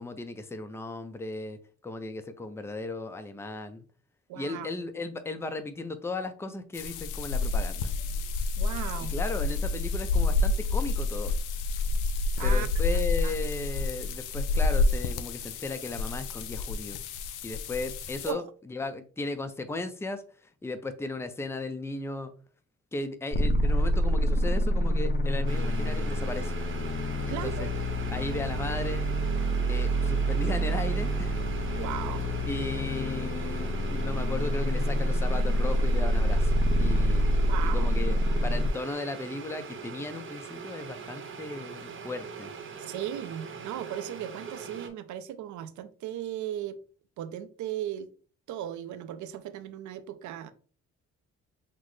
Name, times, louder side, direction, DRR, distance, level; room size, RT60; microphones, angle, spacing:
voice 1, 0.0-3.8 4.3-7.9 9.1-11.3 12.4-17.0 17.4-20.2 20.6-22.3 22.9-26.5 27.2-27.7 28.1-29.1 29.7-31.3 31.7-31.8 32.5-42.5, left 2 dB, 10° left, 0.5 m, -36 dB
voice 2, 4.3-4.7 8.6-9.1 12.4-12.7 12.9-13.4 18.3-18.4 27.3-27.7 31.7-32.3 37.5-37.9 42.8-46.8 47.2-48.1 48.5-50.5, right 11 dB, 75° right, 0.6 m, -37 dB
sound 1, 6.7-18.3, left 3 dB, 90° left, 0.5 m, -29 dB
sound 2, 23.3-38.7, equal, 30° left, 0.9 m, -27 dB
sound 3, 25.5-44.9, right 6 dB, 40° right, 0.9 m, -41 dB
5.8 x 2.1 x 3.1 m
cardioid pair, 90°, 30 cm